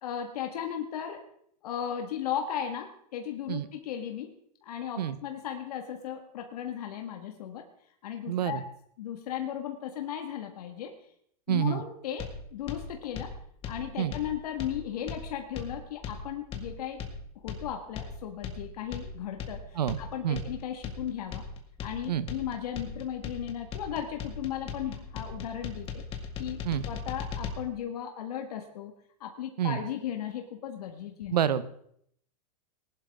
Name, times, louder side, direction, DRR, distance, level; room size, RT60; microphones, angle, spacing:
voice 1, 0.0-1.2 1.6-4.3 4.6-7.6 8.0-8.6 9.0-10.9 11.5-13.3 13.7-17.0 17.4-19.6 20.0-21.4 21.8-25.9 26.1-28.9 29.2-31.4, left 9 dB, 70° left, 4 dB, 1.8 m, -36 dB
voice 2, 8.3-8.6 11.5-11.8 14.0-14.1 19.7-20.0 20.2-20.4 22.1-22.3 26.6-26.8 29.6-29.8 31.3-31.6, right 10 dB, 85° right, 15 dB, 0.9 m, -27 dB
sound 1, 12.2-27.5, left 5 dB, 25° left, 2.0 m, -39 dB
19.5 x 11.5 x 3.6 m, 0.68 s
hypercardioid pair, 125°, 20 cm